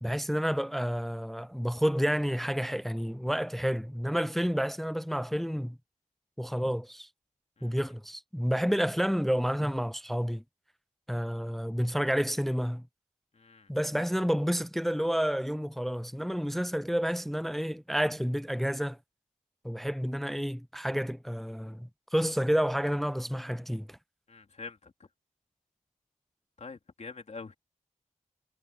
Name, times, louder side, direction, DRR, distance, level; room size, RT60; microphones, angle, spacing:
voice 1, 0.0-5.8 6.4-7.1 7.6-10.4 11.1-12.8 13.7-19.0 19.6-24.0, equal, ahead, 0.6 m, -30 dB
voice 2, 13.3-13.7 24.3-24.9 26.6-27.5, left 4 dB, 55° left, 3.4 m, -45 dB
wide cardioid pair, 115°, 14 cm